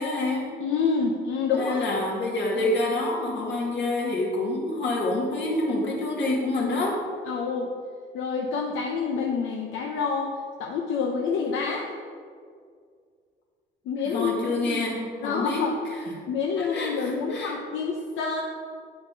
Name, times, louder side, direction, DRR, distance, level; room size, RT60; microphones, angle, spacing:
voice 1, 0.0-0.5 1.5-7.0 14.0-15.7 16.6-17.6, left 2 dB, 65° left, -2 dB, 2.3 m, -27 dB
voice 2, 0.6-1.9 7.3-7.7 8.1-10.3 10.6-11.9 13.9-14.8 15.2-15.8 16.3-18.4, left 5 dB, 85° left, 1 dB, 0.8 m, -27 dB
8.7 x 5.8 x 5.1 m, 2.1 s
cardioid pair, 90°, 20 cm